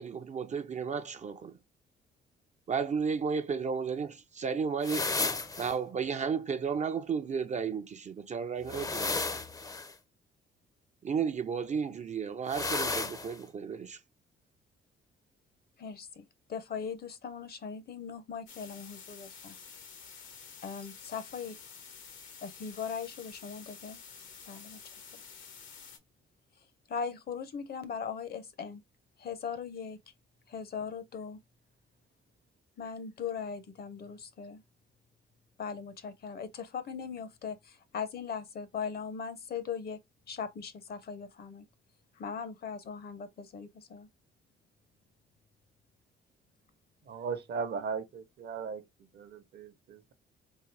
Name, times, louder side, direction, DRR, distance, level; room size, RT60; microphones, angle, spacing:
voice 1, 0.0-1.6 2.7-5.2 5.6-9.2 11.0-14.0, right 6 dB, 35° right, 0.4 m, -33 dB
sound 1, 4.8-5.7 8.6-9.9 12.5-13.4, left 3 dB, 20° left, 0.5 m, -33 dB
voice 2, 15.8-19.6 20.6-21.5 22.4-24.0 24.5-24.8 26.9-28.8 29.2-30.0 30.5-31.4 32.8-34.6 35.6-40.0 40.3-41.7 42.2-44.1, left 6 dB, 50° left, 0.7 m, -39 dB
sound 2, 18.5-26.0, left 6 dB, 85° left, 1.1 m, -50 dB
voice 3, 47.1-48.8 49.1-50.1, right 5 dB, 60° right, 0.8 m, -37 dB
3.7 x 2.7 x 3.1 m
cardioid pair, 90°, 20 cm